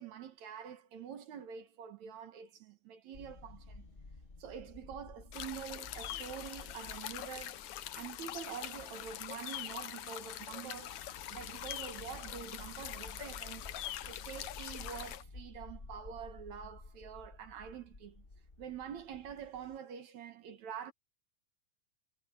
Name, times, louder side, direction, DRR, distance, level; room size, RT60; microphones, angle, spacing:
voice 1, 0.0-3.9 4.4-7.6 8.0-11.0 11.3-13.7 14.0-18.2 18.6-20.9, right 8 dB, 60° right, 2.4 m, -46 dB
sound 1, 3.1-19.8, left 3 dB, 85° left, 0.5 m, -53 dB
sound 2, 5.3-15.2, left 12 dB, 70° left, 2.1 m, -44 dB
omnidirectional pair, 3.9 m